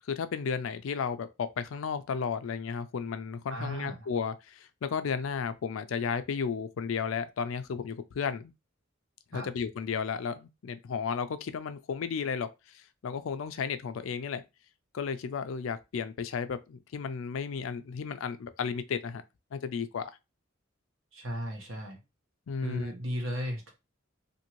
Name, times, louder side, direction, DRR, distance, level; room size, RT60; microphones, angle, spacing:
voice 1, 0.1-8.5 9.3-12.5 12.7-14.4 14.9-19.2 19.5-20.1 22.5-22.9, left 6 dB, 75° left, 0.4 m, -33 dB
voice 2, 3.5-4.1 9.3-9.5 21.1-22.0 22.6-23.7, equal, 80° right, 1.1 m, -35 dB
2.6 x 2.6 x 2.9 m
head